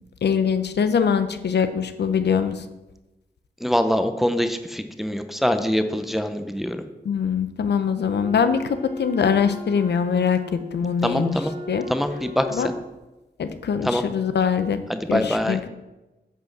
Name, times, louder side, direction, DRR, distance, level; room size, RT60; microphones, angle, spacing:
voice 1, 0.2-2.6 7.0-11.4 11.7-11.8 12.5-12.7 13.4-14.8 15.1-15.7, left 6 dB, 85° left, 10 dB, 0.9 m, -23 dB
voice 2, 3.6-6.8 11.0-11.5 11.9-12.7 13.8-14.0 14.9-15.6, equal, ahead, 7 dB, 0.7 m, -24 dB
Wind instrument woodwind instrument, 8.0-12.9, equal, 35° right, 2.1 m, -38 dB
10.5 x 6.1 x 7.2 m, 1.0 s
wide cardioid pair, 165°, 17 cm